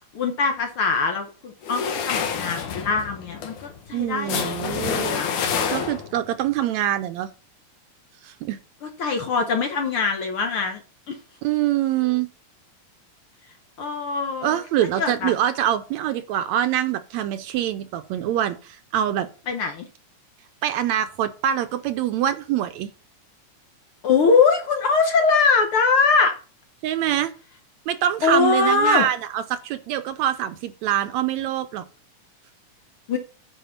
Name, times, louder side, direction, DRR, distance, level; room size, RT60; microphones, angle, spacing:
voice 1, 0.1-5.3 9.0-10.8 11.1-11.2 13.8-14.6 15.0-15.3 19.5-19.9 24.0-26.4 28.2-29.0 33.1-33.2, left 4 dB, 60° left, 5 dB, 1.5 m, -22 dB
sound 1, 1.6-6.3, left 6 dB, 80° left, 2.9 m, -28 dB
voice 2, 3.9-5.2 5.7-7.3 8.2-8.6 11.4-12.3 14.4-19.3 20.6-22.9 26.8-27.3 27.9-31.8, right 11 dB, 75° right, 10 dB, 1.8 m, -24 dB
9.2 x 5.0 x 5.7 m, 0.36 s
omnidirectional pair, 3.5 m